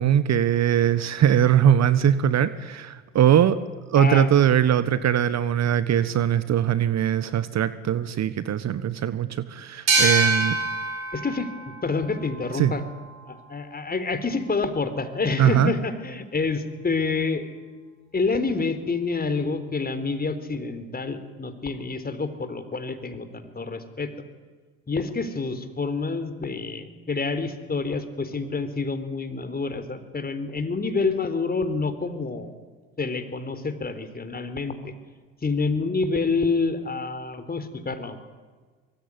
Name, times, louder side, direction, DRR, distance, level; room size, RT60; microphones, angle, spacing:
voice 1, 0.0-3.6 3.9-10.6 12.6-12.7 15.4-15.7, right 10 dB, 40° right, 15 dB, 1.4 m, -21 dB
voice 2, 4.0-4.3 11.1-12.8 13.3-17.6 18.1-24.1 24.9-32.5 33.0-34.9 35.4-38.2, left 4 dB, 25° left, 11 dB, 3.9 m, -28 dB
sound 1, 9.9-13.2, right 2 dB, 90° right, 5.3 m, -26 dB
24.0 x 23.5 x 9.8 m, 1.4 s
figure-of-eight pair, 60°, 40 cm